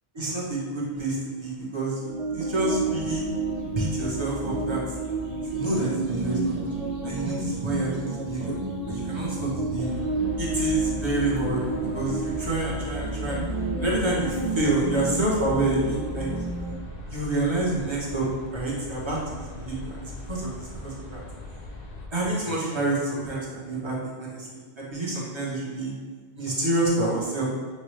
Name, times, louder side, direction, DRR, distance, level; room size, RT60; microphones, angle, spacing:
voice 1, 0.1-3.2 3.8-4.8 5.5-6.5 7.0-8.5 8.9-10.0 10.4-13.4 13.8-16.3 17.1-18.3 18.5-20.5 20.8-21.2 22.1-25.9 26.4-27.5, right 2 dB, 30° right, -5 dB, 0.9 m, -28 dB
sound 1, 2.0-16.7, right 3 dB, 50° right, 0.5 m, -30 dB
sound 2, 9.8-22.1, left 1 dB, 45° left, 0.6 m, -41 dB
6.3 x 2.2 x 3.1 m, 1.5 s
omnidirectional pair, 1.1 m